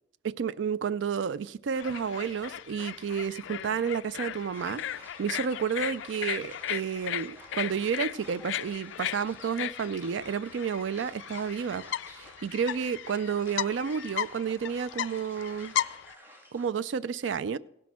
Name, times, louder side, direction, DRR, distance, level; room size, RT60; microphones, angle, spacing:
voice 1, 0.2-4.8 5.2-11.8 12.2-15.7 16.5-17.6, right 6 dB, 90° right, 0.4 m, -31 dB
sound 1, 1.7-16.1, left 11 dB, 85° left, 0.3 m, -36 dB
sound 2, 1.8-4.0, left 2 dB, 35° left, 1.8 m, -60 dB
sound 3, 4.5-16.7, equal, 10° right, 1.5 m, -52 dB
16.5 x 6.1 x 5.9 m
head